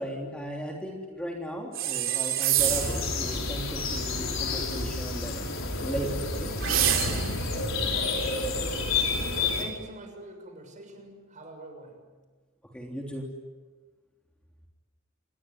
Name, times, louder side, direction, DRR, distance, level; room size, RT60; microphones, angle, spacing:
voice 1, 0.0-5.5 5.8-6.5 12.7-13.2, equal, 5° left, 0 dB, 3.3 m, -36 dB
sound 1, 1.7-3.1 6.6-7.4, right 10 dB, 65° right, 3.6 m, -26 dB
sound 2, 2.6-9.6, left 3 dB, 70° left, 5.5 m, -30 dB
voice 2, 7.4-8.6 9.3-12.1, right 1 dB, 35° right, 5 dB, 6.8 m, -45 dB
28.0 x 22.0 x 9.5 m, 1.3 s
head